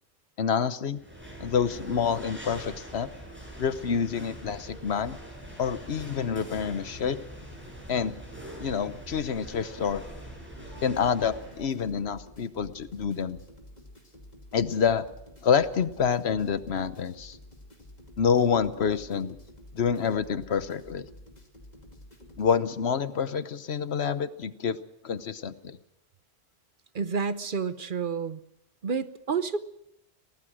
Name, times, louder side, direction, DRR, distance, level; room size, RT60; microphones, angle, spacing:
voice 1, 0.4-1.0 1.4-3.1 3.6-5.2 5.6-7.2 7.9-8.2 8.6-10.0 10.8-13.4 14.5-15.1 15.4-17.4 18.2-19.4 19.7-21.1 22.4-24.8 25.0-25.8, left 7 dB, 75° left, 13 dB, 1.2 m, -27 dB
sound 1, 0.9-11.7, right 1 dB, 10° right, 8.0 m, -43 dB
sound 2, 10.6-22.6, left 1 dB, 40° left, 2.8 m, -50 dB
voice 2, 26.9-28.4 28.8-29.6, right 5 dB, 55° right, 12 dB, 1.0 m, -29 dB
24.0 x 18.0 x 6.2 m, 0.80 s
omnidirectional pair, 1.1 m